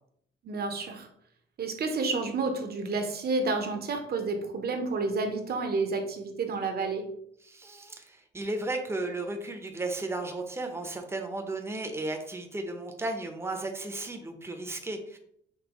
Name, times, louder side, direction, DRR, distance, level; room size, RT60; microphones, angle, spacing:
voice 1, 0.4-1.1 1.6-7.1, right 3 dB, 50° right, 5 dB, 0.9 m, -30 dB
voice 2, 7.4-15.2, right 2 dB, 15° right, 4 dB, 0.8 m, -34 dB
5.3 x 3.0 x 3.0 m, 0.70 s
cardioid pair, 90°, 20 cm